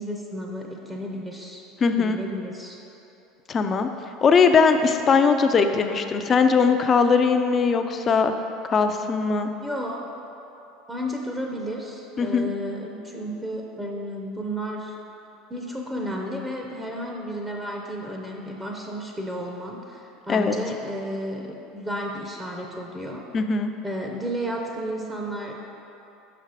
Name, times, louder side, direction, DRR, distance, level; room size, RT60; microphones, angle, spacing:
voice 1, 0.0-1.6 2.0-2.8 9.6-10.0 10.9-14.9 15.5-23.3 23.8-25.5, equal, 15° right, 0 dB, 0.7 m, -32 dB
voice 2, 1.8-2.2 3.5-3.9 4.2-8.3 8.7-9.5 12.2-12.5 20.3-20.6 23.3-23.7, left 5 dB, 35° left, 7 dB, 0.5 m, -20 dB
5.9 x 5.6 x 4.8 m, 2.9 s
supercardioid pair, 105°, 0 cm